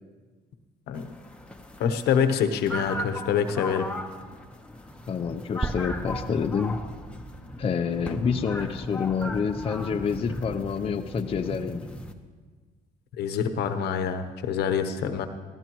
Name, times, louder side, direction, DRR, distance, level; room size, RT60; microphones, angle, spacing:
sound 1, 0.9-12.1, left 1 dB, 5° left, 1.0 m, -37 dB
voice 1, 1.8-3.9 13.2-15.3, left 7 dB, 75° left, 8 dB, 1.0 m, -26 dB
voice 2, 5.1-6.8 7.6-11.9, left 6 dB, 35° left, 5 dB, 0.7 m, -28 dB
sound 2, 5.6-9.6, right 3 dB, 10° right, 0.3 m, -38 dB
20.0 x 14.5 x 3.1 m, 1.4 s
cardioid pair, 110°, 17 cm